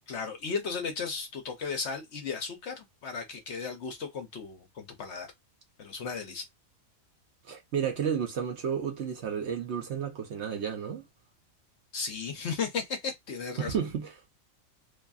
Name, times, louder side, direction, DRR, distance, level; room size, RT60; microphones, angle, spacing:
voice 1, 0.1-5.3 5.8-6.5 11.9-13.8, left 5 dB, 60° left, 0.9 m, -35 dB
voice 2, 7.4-11.0 13.6-14.1, right 7 dB, 65° right, 0.8 m, -32 dB
2.6 x 2.5 x 2.3 m
omnidirectional pair, 1.4 m